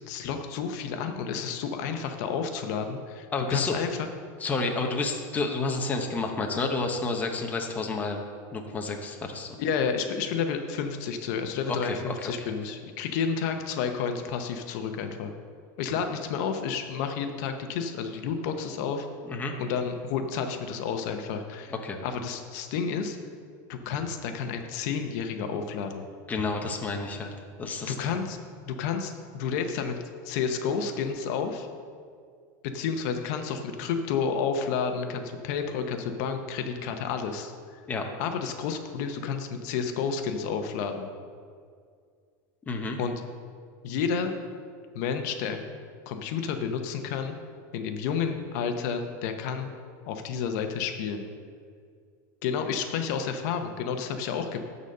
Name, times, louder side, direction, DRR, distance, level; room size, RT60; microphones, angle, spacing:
voice 1, 0.1-4.1 9.6-15.3 15.8-19.1 19.6-21.7 22.0-23.2 23.7-26.1 27.8-28.4 28.6-30.0 30.2-31.7 32.6-37.5 38.2-41.1 43.0-43.1 43.8-44.4 44.9-45.6 46.1-47.4 47.7-49.7 50.1-51.3 52.4-54.6, left 6 dB, 60° left, 6 dB, 0.9 m, -30 dB
voice 2, 3.3-3.7 4.4-8.2 8.5-9.6 11.7-12.5 19.3-19.5 21.8-22.0 26.3-27.3 27.6-28.1 37.9-38.1 42.7-43.0, left 3 dB, 15° left, 2 dB, 0.9 m, -30 dB
12.0 x 4.1 x 6.6 m, 2.1 s
supercardioid pair, 145°, 10 cm